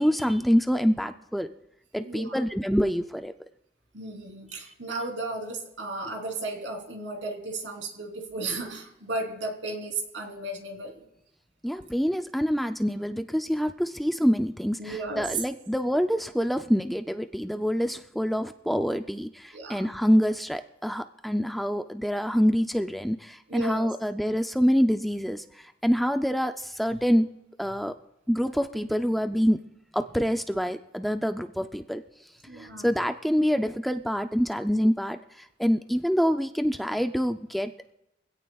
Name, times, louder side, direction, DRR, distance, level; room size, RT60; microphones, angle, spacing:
voice 1, 0.0-1.5 1.9-3.3 11.6-27.3 27.6-27.9 28.3-29.6 29.9-32.0 32.6-37.7, equal, ahead, 7 dB, 0.4 m, -26 dB
voice 2, 2.0-2.4 3.9-11.0 14.8-15.3 19.5-19.9 23.5-23.9 32.5-32.9, right 2 dB, 90° right, 2 dB, 3.3 m, -34 dB
24.5 x 16.5 x 2.4 m, 0.87 s
head